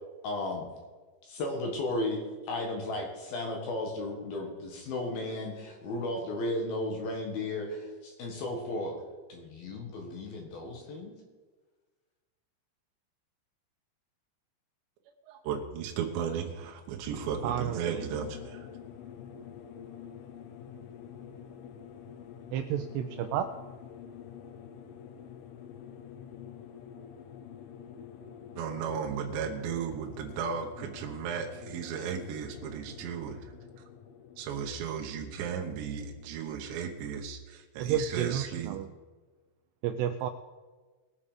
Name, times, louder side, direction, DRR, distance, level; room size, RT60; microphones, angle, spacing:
voice 1, 0.2-0.7 1.2-9.0 9.3-11.2, left 2 dB, 60° left, 1 dB, 2.9 m, -34 dB
voice 2, 15.3-18.7 28.6-33.8 34.4-38.8, right 7 dB, 75° right, 2 dB, 3.1 m, -35 dB
sound 1, 17.1-36.7, left 8 dB, 90° left, 3.5 m, -48 dB
voice 3, 17.4-18.1 22.5-23.5 37.8-38.9 39.8-40.3, right 9 dB, 90° right, 8 dB, 2.4 m, -31 dB
21.0 x 7.2 x 5.0 m, 1.4 s
omnidirectional pair, 5.5 m